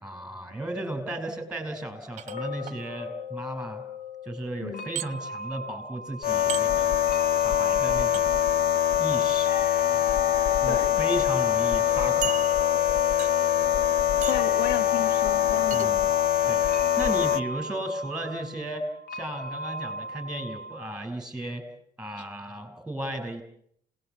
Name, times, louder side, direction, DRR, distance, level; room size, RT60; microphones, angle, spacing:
voice 1, 0.0-3.8 4.2-7.0 7.4-8.4 9.0-9.5 9.9-10.0 10.6-12.4 15.7-16.1 16.5-16.7 17.0-21.6 22.0-23.4, right 1 dB, 5° right, 7 dB, 5.9 m, -35 dB
sound 1, 2.2-2.8 5.0-5.1 6.5-6.7 8.1-8.3 9.6-9.9 10.6-10.7 11.1-11.2 12.2-12.8 13.2-13.5 14.2-14.5 15.7-15.9, right 11 dB, 45° right, 0.9 m, -35 dB
sound 2, 2.3-21.0, left 3 dB, 75° left, 2.0 m, -39 dB
sound 3, 6.2-17.4, left 10 dB, 60° left, 1.0 m, -23 dB
voice 2, 10.7-11.0 14.3-16.0 22.2-22.3, left 7 dB, 90° left, 11 dB, 1.6 m, -33 dB
27.5 x 19.5 x 8.4 m, 0.70 s
cardioid pair, 110°, 17 cm